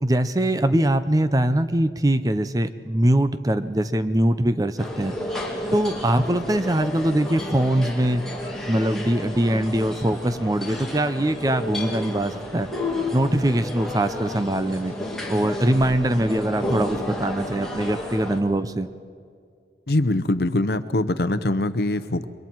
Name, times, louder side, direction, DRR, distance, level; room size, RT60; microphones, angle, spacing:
voice 1, 0.0-5.1 5.7-8.2 8.7-12.7 13.1-14.9 15.3-18.9, right 1 dB, 20° right, 11 dB, 0.6 m, -22 dB
sound 1, 4.8-18.4, left 1 dB, 5° left, 2.4 m, -32 dB
voice 2, 19.9-22.3, left 1 dB, 60° left, 12 dB, 0.8 m, -23 dB
29.5 x 23.0 x 4.6 m, 2.2 s
head